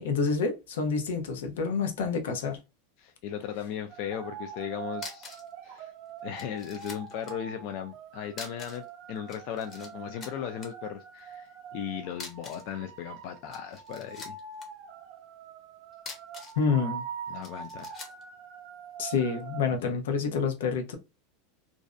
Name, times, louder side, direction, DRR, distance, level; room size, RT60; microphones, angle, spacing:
voice 1, 0.0-2.6 16.6-17.0 19.0-21.0, left 5 dB, 90° left, 0.6 m, -28 dB
voice 2, 3.0-5.4 5.6-5.9 6.2-14.4 17.3-17.9 19.6-20.0, left 9 dB, 50° left, 0.3 m, -37 dB
sound 1, 3.9-19.6, right 7 dB, 40° right, 0.5 m, -44 dB
sound 2, 4.9-5.5 5.8-5.9 6.4-7.4 8.3-8.9 9.2-9.9 10.2-10.7 12.1-12.7 13.4-14.7 15.9-16.6 17.4-18.2, left 4 dB, 25° left, 0.7 m, -44 dB
2.5 x 2.1 x 2.3 m
supercardioid pair, 145°, 0 cm